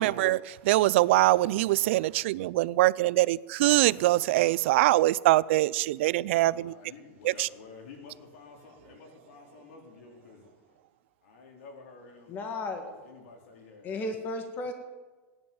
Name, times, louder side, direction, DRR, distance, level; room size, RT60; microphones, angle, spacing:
voice 1, 0.0-6.7 7.2-7.5, right 17 dB, 60° right, 0.4 m, -23 dB
voice 2, 6.3-10.5 11.2-12.4 12.8-14.2, left 4 dB, 75° left, 4.1 m, -50 dB
voice 3, 12.3-12.8 13.8-14.7, left 2 dB, 25° left, 1.8 m, -34 dB
16.5 x 10.5 x 7.1 m
supercardioid pair, 165°, 7 cm